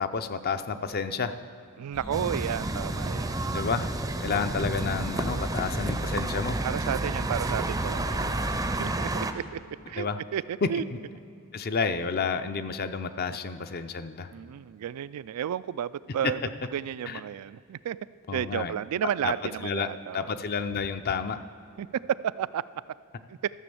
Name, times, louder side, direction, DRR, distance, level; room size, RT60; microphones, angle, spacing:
voice 1, 0.0-1.3 3.5-3.9 4.2-6.6 10.0-10.2 10.6-11.0 11.5-14.3 16.2-16.3 17.1-17.2 18.3-18.7 19.2-19.3 19.6-21.4, left 5 dB, 45° left, 10 dB, 0.5 m, -30 dB
voice 2, 1.8-3.4 5.2-5.5 6.6-8.2 8.8-9.6 9.9-10.1 10.3-10.8 14.3-16.4 16.7-18.0 18.3-20.3 21.8-22.6 23.3-23.5, right 9 dB, 80° right, 17 dB, 0.3 m, -32 dB
sound 1, 1.9-8.8, equal, 75° left, 2.9 m, -38 dB
sound 2, 2.1-9.3, right 2 dB, 15° right, 0.5 m, -31 dB
13.0 x 7.1 x 6.9 m, 2.6 s
head